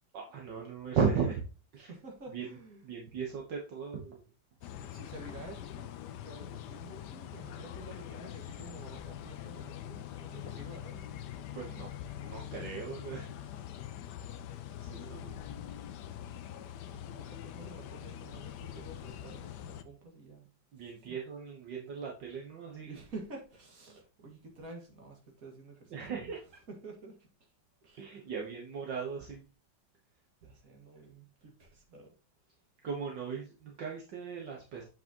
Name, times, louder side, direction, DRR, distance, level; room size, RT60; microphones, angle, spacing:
voice 1, 0.1-1.4 1.7-1.9 2.3-2.5 2.8-4.2 11.5-11.9 12.2-13.3 14.8-15.4 18.7-18.8 20.7-23.0 25.9-26.4 28.0-29.4 32.8-34.8, right 6 dB, 65° right, 0 dB, 1.9 m, -36 dB
voice 2, 1.8-2.8 4.6-11.2 13.4-13.6 14.9-15.6 16.9-20.5 20.8-21.2 22.8-26.3 26.7-27.3 27.8-28.3 30.4-32.1, right 2 dB, 45° right, 1 dB, 2.5 m, -50 dB
sound 1, 4.6-19.8, left 11 dB, 70° left, 1.1 m, -44 dB
7.8 x 6.1 x 2.9 m, 0.34 s
omnidirectional pair, 2.1 m